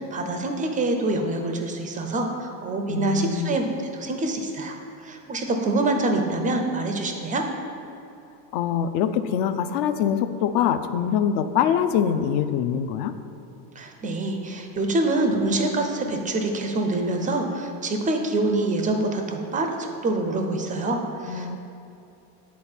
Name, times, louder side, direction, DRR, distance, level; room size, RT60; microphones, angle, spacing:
voice 1, 0.0-3.7 4.0-7.4 13.8-21.6, right 2 dB, 20° right, 4 dB, 0.4 m, -26 dB
voice 2, 2.9-3.6 8.5-13.1 21.3-21.6, left 8 dB, 55° left, 10 dB, 0.5 m, -24 dB
8.5 x 4.1 x 4.4 m, 2.8 s
supercardioid pair, 125°, 48 cm